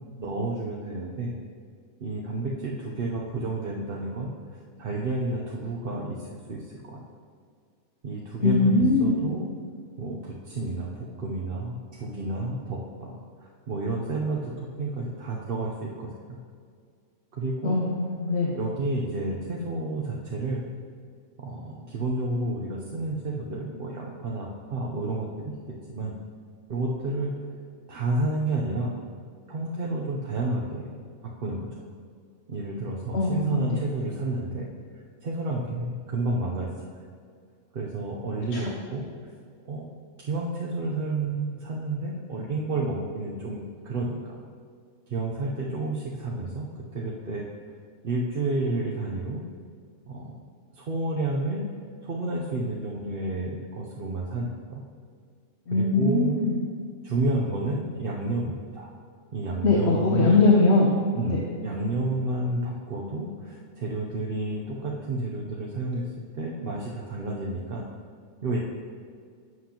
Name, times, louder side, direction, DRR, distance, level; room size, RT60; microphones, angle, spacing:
voice 1, 0.2-1.4 2.0-7.0 8.0-9.5 10.0-16.4 17.3-18.0 18.5-20.6 21.4-25.5 25.9-26.1 26.7-27.5 27.9-29.0 29.5-30.9 31.2-31.7 32.5-34.7 35.2-36.7 37.7-39.0 39.7-39.9 40.2-44.4 45.1-47.5 48.0-49.4 50.1-50.4 50.7-51.7 52.0-54.8 55.7-56.4 57.0-58.9 59.3-60.4 61.1-66.1 66.4-67.9 68.4-68.6, right 2 dB, 50° right, -3 dB, 0.9 m, -30 dB
voice 2, 8.4-9.1 17.6-18.5 33.1-33.6 55.7-56.5 59.6-60.9 61.3-61.4, left 3 dB, 55° left, -2 dB, 1.1 m, -21 dB
11.5 x 7.7 x 2.9 m, 2.2 s
omnidirectional pair, 1.4 m